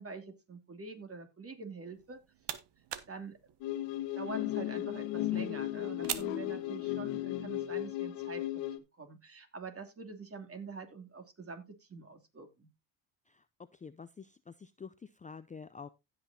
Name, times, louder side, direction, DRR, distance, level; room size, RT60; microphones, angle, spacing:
voice 1, 0.0-2.2 3.1-3.4 4.1-8.6 9.0-12.7, right 4 dB, 30° right, 6 dB, 2.8 m, -45 dB
sound 1, 1.9-7.3, right 11 dB, 65° right, 1.2 m, -45 dB
sound 2, 3.6-8.8, left 14 dB, 85° left, 1.4 m, -35 dB
voice 2, 13.7-15.9, left 5 dB, 15° left, 12 dB, 0.5 m, -48 dB
16.0 x 6.2 x 2.8 m, 0.24 s
supercardioid pair, 75°, 45 cm